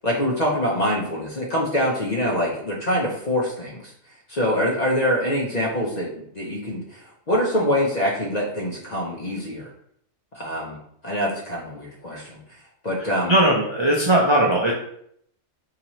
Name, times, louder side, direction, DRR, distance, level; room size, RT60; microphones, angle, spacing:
voice 1, 0.0-3.9 4.3-9.7 10.3-10.8 11.0-12.4 12.8-13.3, equal, 45° left, -2 dB, 0.6 m, -24 dB
voice 2, 13.0-14.7, right 1 dB, 45° right, -3 dB, 0.3 m, -19 dB
4.1 x 2.9 x 3.0 m, 0.69 s
omnidirectional pair, 1.4 m